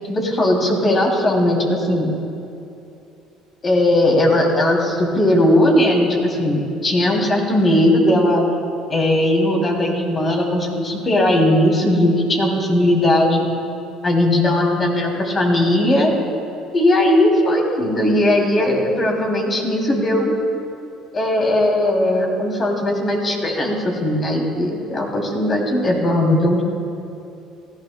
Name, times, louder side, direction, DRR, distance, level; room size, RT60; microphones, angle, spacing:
voice 1, 0.1-2.1 3.6-8.4 8.9-13.5 14.0-16.1 16.7-20.3 21.1-26.6, left 1 dB, 35° left, 0 dB, 2.8 m, -18 dB
18.0 x 14.5 x 2.2 m, 2.7 s
supercardioid pair, 85°, 0 cm